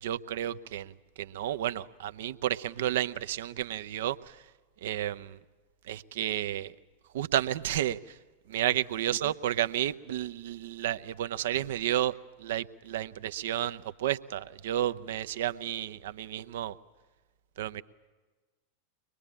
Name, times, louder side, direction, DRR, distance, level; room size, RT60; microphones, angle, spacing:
voice 1, 0.0-4.4 4.8-5.4 5.8-6.7 7.1-8.2 8.5-16.8 17.6-17.8, right 12 dB, 55° right, 13 dB, 0.7 m, -32 dB
23.5 x 21.5 x 8.7 m, 1.3 s
figure-of-eight pair, 90°, 0 cm